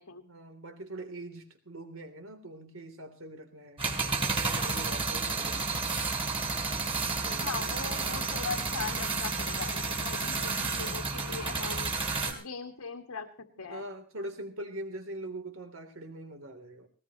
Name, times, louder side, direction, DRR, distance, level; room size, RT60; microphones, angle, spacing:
voice 1, 0.2-3.9 4.4-5.8 7.2-8.2 10.1-10.5 13.7-16.9, right 1 dB, 70° right, 7 dB, 3.3 m, -43 dB
sound 1, 3.8-12.3, right 4 dB, 25° right, 3.6 m, -31 dB
voice 2, 7.4-11.9 12.3-13.8, left 5 dB, 90° left, 2 dB, 1.8 m, -40 dB
19.5 x 19.0 x 3.1 m, 0.36 s
head